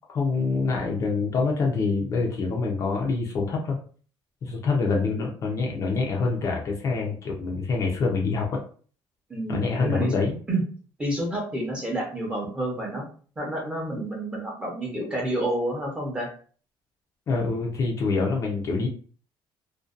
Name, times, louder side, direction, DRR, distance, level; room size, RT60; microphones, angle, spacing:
voice 1, 0.1-3.8 4.4-8.6 9.5-10.4 17.3-18.9, left 4 dB, 35° left, -1 dB, 0.5 m, -26 dB
voice 2, 9.3-10.2 10.5-10.6 11.0-13.0 13.4-16.3, right 1 dB, 10° right, -2 dB, 0.7 m, -29 dB
2.5 x 2.2 x 2.4 m, 0.42 s
cardioid pair, 175°, 9 cm